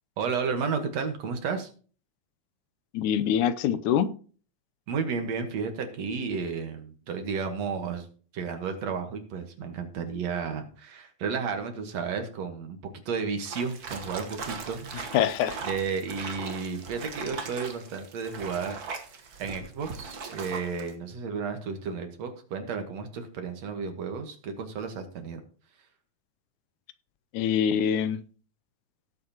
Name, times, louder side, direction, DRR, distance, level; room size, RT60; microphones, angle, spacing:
voice 1, 0.2-1.7 4.9-8.1 8.3-14.9 15.6-18.8 19.4-25.4, right 5 dB, 65° right, 2.4 m, -32 dB
voice 2, 2.9-4.1 15.1-15.6 27.3-28.2, left 9 dB, 85° left, 2.1 m, -24 dB
sound 1, 13.5-20.9, right 4 dB, 50° right, 1.2 m, -39 dB
18.0 x 7.7 x 2.9 m
omnidirectional pair, 3.5 m